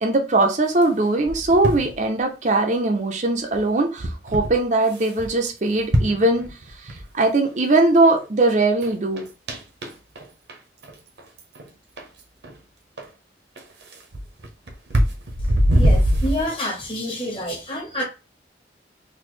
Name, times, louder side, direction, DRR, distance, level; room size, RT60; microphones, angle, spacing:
voice 1, 0.0-6.5 6.8-9.3, right 2 dB, 40° right, 4 dB, 0.6 m, -20 dB
sound 1, 0.8-1.9 3.5-3.6 4.0-4.5 4.9-5.3 5.8-7.0 7.5-7.6 8.2-8.3 8.5-8.9 9.2-10.2 10.5-10.6 10.8-10.9 11.2-11.7 12.0-12.1 12.4-12.5 13.0-13.1 13.6-16.6, equal, 75° right, 1.0 m, -22 dB
voice 2, 15.7-18.0, equal, 30° left, 0 dB, 1.4 m, -28 dB
4.1 x 2.6 x 3.1 m, 0.29 s
head